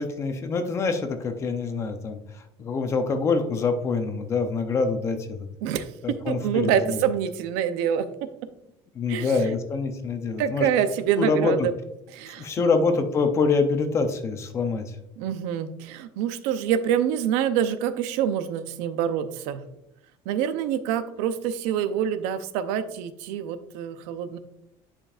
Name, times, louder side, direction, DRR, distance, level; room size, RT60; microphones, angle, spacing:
voice 1, 0.0-5.5 6.0-7.0 8.9-10.7 11.2-11.7 12.4-15.0, left 4 dB, 25° left, 7 dB, 0.6 m, -25 dB
voice 2, 5.6-8.3 9.1-9.3 10.4-11.7 12.1-12.7 15.2-19.6 20.3-24.4, right 9 dB, 90° right, 11 dB, 0.6 m, -26 dB
10.0 x 5.1 x 2.4 m, 0.85 s
cardioid pair, 175°, 11 cm